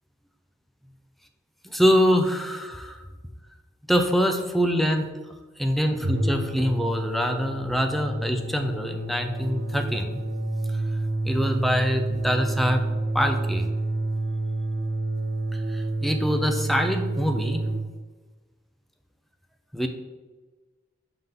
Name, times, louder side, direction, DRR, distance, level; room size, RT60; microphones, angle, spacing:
voice 1, 1.6-3.0 3.9-5.1 5.6-10.2 11.2-12.8 13.1-13.7 15.5-17.6 19.7-19.9, equal, ahead, 5 dB, 0.5 m, -24 dB
sound 1, 5.9-17.8, right 2 dB, 60° right, 0.7 m, -29 dB
5.6 x 3.6 x 5.7 m, 1.3 s
head